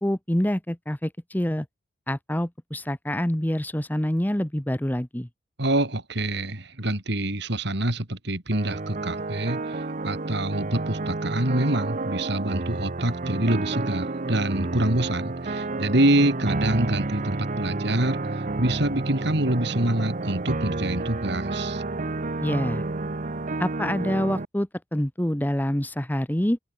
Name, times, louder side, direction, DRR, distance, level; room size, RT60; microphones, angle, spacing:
voice 1, 0.0-1.7 2.1-5.3 22.4-22.8 23.6-26.6, equal, 10° left, 1.0 m, -26 dB
voice 2, 5.6-21.8, right 1 dB, 65° right, 3.7 m, -26 dB
sound 1, 8.5-24.5, right 2 dB, 40° right, 0.9 m, -30 dB
open air
head